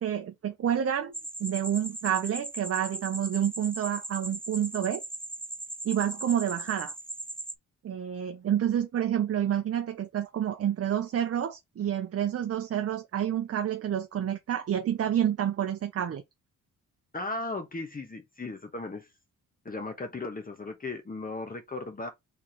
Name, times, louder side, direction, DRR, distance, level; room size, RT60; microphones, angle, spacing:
voice 1, 0.0-1.1 1.4-5.0 5.8-6.9 7.8-16.2, right 10 dB, 45° right, 0.6 m, -29 dB
sound 1, 1.1-7.5, right 2 dB, 5° right, 0.3 m, -39 dB
voice 2, 17.1-19.1 19.6-22.1, left 2 dB, 25° left, 1.0 m, -36 dB
3.6 x 3.2 x 3.0 m
cardioid pair, 70°, 34 cm